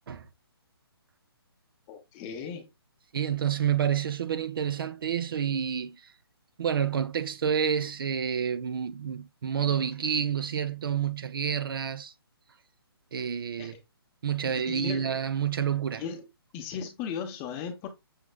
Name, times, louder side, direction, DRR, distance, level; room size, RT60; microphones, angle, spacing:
voice 1, 1.9-2.7 13.6-13.8 14.4-15.1 16.0-16.3 16.5-17.9, left 7 dB, 20° left, 0.7 m, -37 dB
voice 2, 3.1-6.0 6.6-12.1 13.1-13.8 14.2-16.0, right 8 dB, 60° right, 0.5 m, -29 dB
6.4 x 3.0 x 2.2 m
hypercardioid pair, 150°, 13 cm